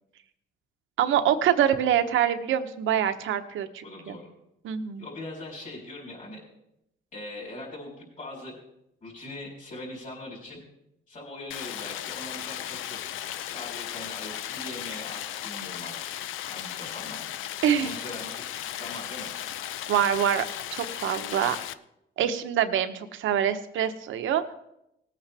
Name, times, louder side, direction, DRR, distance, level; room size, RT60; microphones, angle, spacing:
voice 1, 1.0-4.2 4.6-5.0 17.6-17.9 19.9-20.4 20.7-21.6 22.2-24.4, right 9 dB, 80° right, 9 dB, 1.0 m, -25 dB
voice 2, 3.8-4.3 5.0-6.4 7.1-8.5 9.0-10.6 11.1-13.2 13.5-15.9 16.5-17.2 17.8-18.3 18.8-19.3, left 1 dB, 40° left, -6 dB, 4.8 m, -41 dB
Stream, 11.5-21.7, left 11 dB, 90° left, 0.5 m, -36 dB
19.0 x 8.8 x 3.4 m, 0.82 s
cardioid pair, 90°, 20 cm